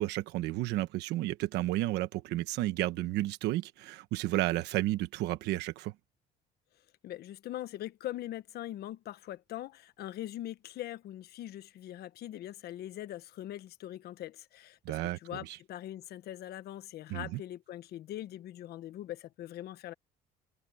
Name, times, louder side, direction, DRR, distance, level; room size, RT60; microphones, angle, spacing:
voice 1, 0.0-5.9 14.8-15.6 17.1-17.4, right 16 dB, 85° right, 1.2 m, -32 dB
voice 2, 7.0-19.9, left 13 dB, 70° left, 1.2 m, -42 dB
cardioid pair, 110°, 17 cm